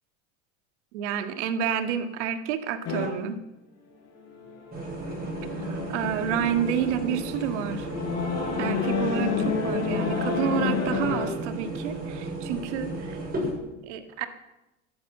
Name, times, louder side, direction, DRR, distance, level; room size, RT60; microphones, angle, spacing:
voice 1, 0.9-3.4 5.6-7.9 8.6-13.2 13.8-14.3, right 8 dB, 75° right, 8 dB, 1.9 m, -29 dB
sound 1, 2.9-3.1 4.2-11.3, left 5 dB, 45° left, 6.2 m, -30 dB
sound 2, 4.7-13.5, right 2 dB, 25° right, 7.3 m, -34 dB
14.0 x 11.0 x 7.9 m, 0.95 s
supercardioid pair, 100°, 35 cm